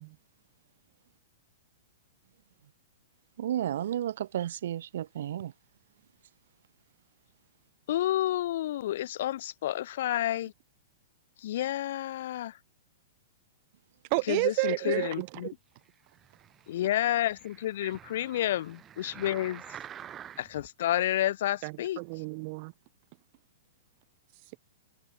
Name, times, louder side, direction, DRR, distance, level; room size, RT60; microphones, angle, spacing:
voice 1, 3.4-5.5, right 11 dB, 50° right, 1.5 m, -32 dB
voice 2, 7.9-10.5 11.4-12.6 14.2-15.5 16.7-19.6 20.4-22.0, left 13 dB, 45° left, 2.8 m, -30 dB
voice 3, 14.1-15.5 17.8-17.9 21.6-22.7, right 31 dB, 30° right, 0.3 m, -31 dB
sound 1, 16.1-20.7 21.3-21.4, right 9 dB, 15° right, 2.8 m, -48 dB
open air
hypercardioid pair, 180°, 0 cm